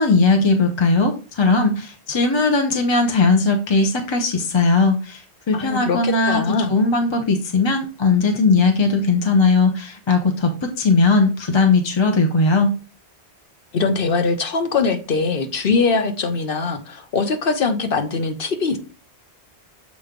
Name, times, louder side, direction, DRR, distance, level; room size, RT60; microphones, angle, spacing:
voice 1, 0.0-12.8, left 3 dB, 30° left, 4 dB, 0.7 m, -18 dB
voice 2, 5.5-6.7 13.7-18.8, left 4 dB, 60° left, 8 dB, 1.0 m, -22 dB
7.0 x 3.1 x 5.1 m, 0.35 s
omnidirectional pair, 1.1 m